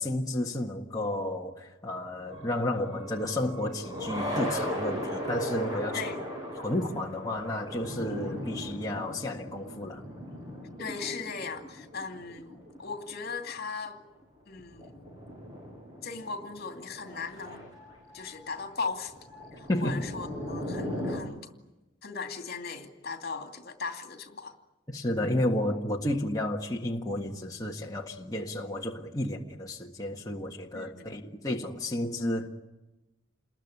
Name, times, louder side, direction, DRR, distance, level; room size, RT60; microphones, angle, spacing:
voice 1, 0.0-6.0 6.6-10.0 19.7-20.0 24.9-32.5, left 1 dB, 20° left, 1.7 m, -32 dB
sound 1, 2.3-13.5 13.9-14.0 14.2-14.3 14.6-21.2, equal, 20° right, 7.6 m, -38 dB
voice 2, 10.8-14.0 14.5-15.1 16.0-17.7 18.1-21.5 22.0-24.5 30.7-31.1, left 4 dB, 50° left, 2.6 m, -38 dB
29.0 x 21.5 x 9.7 m
head